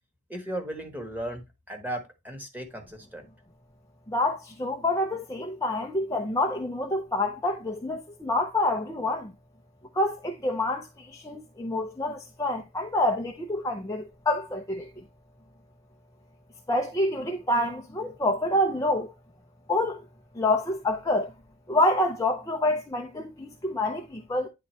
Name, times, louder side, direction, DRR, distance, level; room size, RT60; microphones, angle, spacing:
voice 1, 0.3-3.2, right 1 dB, 10° right, 1.3 m, -36 dB
voice 2, 4.1-9.3 9.9-14.9 16.7-19.1 19.7-20.0 20.3-21.3 21.7-24.5, left 1 dB, 15° left, 0.5 m, -27 dB
9.6 x 3.9 x 3.1 m
head